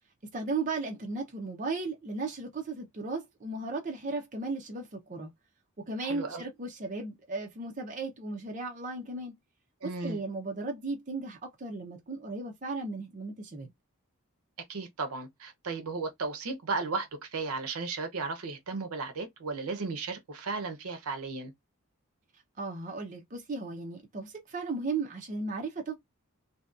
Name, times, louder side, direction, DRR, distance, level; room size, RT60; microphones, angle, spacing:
voice 1, 0.3-5.3 5.8-9.3 9.8-13.7 22.6-25.9, right 3 dB, 35° right, 0.5 m, -36 dB
voice 2, 6.0-6.5 9.8-10.2 14.7-21.5, right 4 dB, 75° right, 0.6 m, -35 dB
2.7 x 2.1 x 2.3 m
head